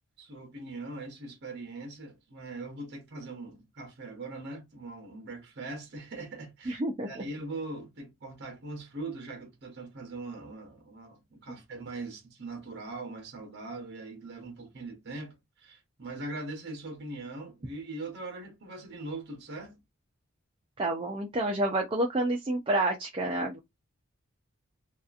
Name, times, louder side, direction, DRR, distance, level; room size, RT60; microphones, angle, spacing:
voice 1, 0.2-19.8, right 2 dB, 55° right, 0.8 m, -41 dB
voice 2, 6.7-7.2 11.5-11.6 20.8-23.6, right 1 dB, 25° right, 0.4 m, -29 dB
2.8 x 2.4 x 2.3 m
head